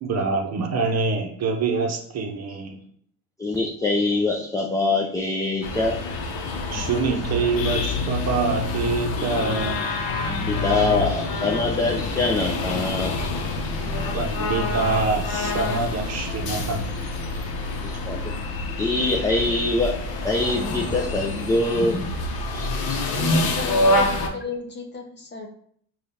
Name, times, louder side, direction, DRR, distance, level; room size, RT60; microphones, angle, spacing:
voice 1, 0.0-2.8 6.7-9.7 14.1-16.9, right 4 dB, 40° right, 3 dB, 0.8 m, -25 dB
voice 2, 3.4-6.0 6.7-6.9 10.3-13.1 13.8-14.0 18.1-18.2 18.8-20.0 20.2-22.1 22.4-23.0, left 2 dB, 10° left, -1 dB, 0.3 m, -24 dB
sound 1, 5.6-24.3, left 2 dB, 65° left, 0.8 m, -27 dB
voice 3, 23.2-25.5, left 4 dB, 25° left, 1 dB, 0.8 m, -32 dB
4.9 x 2.4 x 2.7 m, 0.63 s
supercardioid pair, 85°, 39 cm